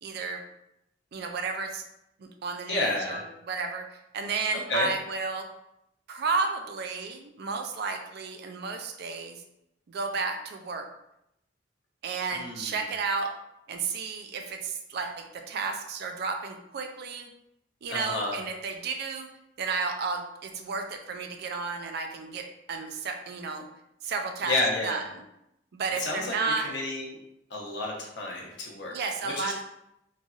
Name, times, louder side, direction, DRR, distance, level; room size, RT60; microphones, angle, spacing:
voice 1, 0.0-0.4 1.1-1.8 2.2-5.5 6.1-9.4 9.9-10.9 12.0-13.3 13.7-17.3 17.8-19.3 19.6-23.7 24.0-24.6 24.8-25.0 25.7-26.7 28.9-29.6, right 4 dB, 60° right, 5 dB, 0.4 m, -32 dB
voice 2, 2.7-3.2 4.7-4.9 12.3-12.9 17.9-18.4 24.4-25.0 26.0-26.4 26.6-27.2 27.5-28.9 29.2-29.6, left 2 dB, 65° left, -2 dB, 0.8 m, -30 dB
3.2 x 2.6 x 2.4 m, 0.83 s
head